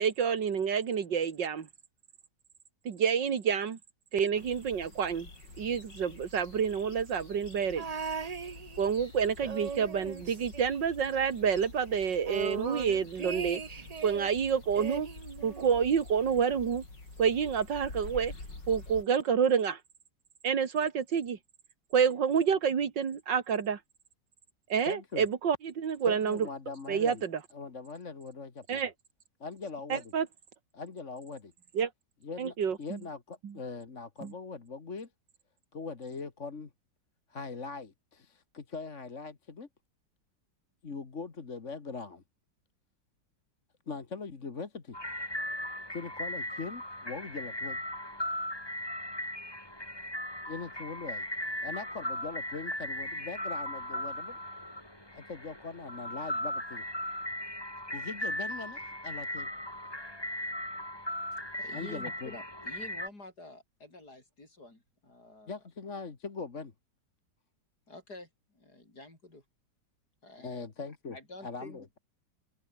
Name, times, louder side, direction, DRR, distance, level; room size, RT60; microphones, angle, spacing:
voice 1, 0.0-1.7 2.9-3.8 4.1-5.3 5.6-7.9 8.8-13.6 14.0-15.1 15.4-16.8 17.2-18.3 18.7-19.8 20.4-21.4 21.9-23.8 24.7-26.5 26.9-27.3 28.7-28.9 29.9-30.3 31.7-31.9 32.4-33.0 33.4-33.5 34.2-34.3, right 7 dB, 85° right, 2.5 m, -28 dB
sound 1, 4.4-19.1, left 3 dB, 80° left, 6.3 m, -48 dB
sound 2, 7.8-9.0 9.4-11.3 11.5-11.6 11.9-14.3 14.7-16.0 16.9-17.0, right 5 dB, 35° right, 0.6 m, -39 dB
voice 2, 24.9-25.3 26.1-27.2 27.5-28.9 29.4-30.1 30.7-31.5 32.2-35.1 35.7-36.7 37.3-39.7 40.8-42.2 43.9-45.0 45.9-47.8 50.5-51.3 51.6-54.4 55.1-56.8 57.9-59.5 61.7-62.4 65.5-66.7 70.4-72.0, left 4 dB, 45° left, 2.2 m, -41 dB
sound 3, 44.9-63.1, left 1 dB, 15° left, 5.0 m, -37 dB
voice 3, 61.6-65.5 67.9-69.4 70.2-70.7 71.1-71.8, left 2 dB, 60° left, 7.5 m, -49 dB
open air
omnidirectional pair, 1.9 m